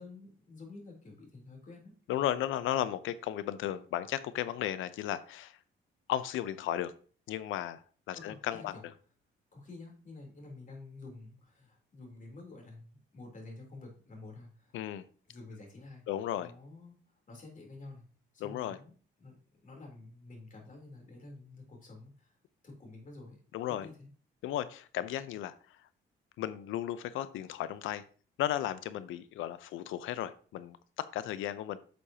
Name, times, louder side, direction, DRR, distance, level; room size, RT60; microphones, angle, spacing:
voice 1, 0.0-1.9 8.2-8.8 9.5-14.8 15.3-16.0 16.3-17.0 17.3-18.0 18.3-18.9 19.2-19.4 19.6-22.3 22.6-23.4 23.7-24.1, left 3 dB, 40° left, 1 dB, 3.5 m, -49 dB
voice 2, 2.1-5.6 6.1-6.9 7.3-8.8 14.7-15.0 16.1-16.5 18.4-18.8 23.5-23.9 24.4-25.5 26.4-28.0 28.4-31.8, left 12 dB, 85° left, 15 dB, 0.7 m, -35 dB
10.5 x 6.4 x 2.9 m, 0.42 s
cardioid pair, 90°, 20 cm